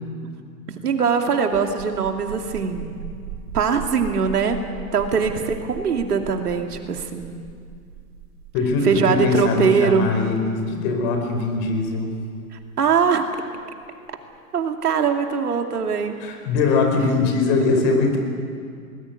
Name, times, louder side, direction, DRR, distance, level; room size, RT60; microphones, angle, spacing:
voice 1, 0.7-2.9 3.5-4.6 4.9-7.3 8.8-10.1 12.8-13.2 14.5-16.1 17.2-17.4, right 6 dB, 70° right, 4 dB, 2.7 m, -21 dB
sound 1, 1.4-14.8, right 8 dB, 50° right, 3.1 m, -39 dB
voice 2, 8.5-12.1 16.2-18.2, left 3 dB, 40° left, 4 dB, 4.9 m, -21 dB
21.0 x 20.0 x 8.2 m, 2.2 s
hypercardioid pair, 120°, 47 cm